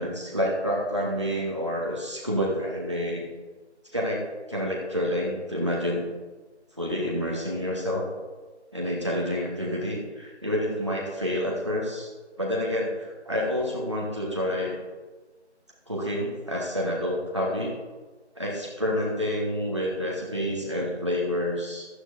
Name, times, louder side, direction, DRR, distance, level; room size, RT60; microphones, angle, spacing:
voice 1, 0.0-3.2 3.9-4.2 4.5-6.1 6.8-8.0 8.7-12.1 12.4-14.8 15.9-17.7 18.3-21.9, equal, 25° right, -4 dB, 1.3 m, -28 dB
13.0 x 10.5 x 2.6 m, 1.3 s
figure-of-eight pair, 175°, 35 cm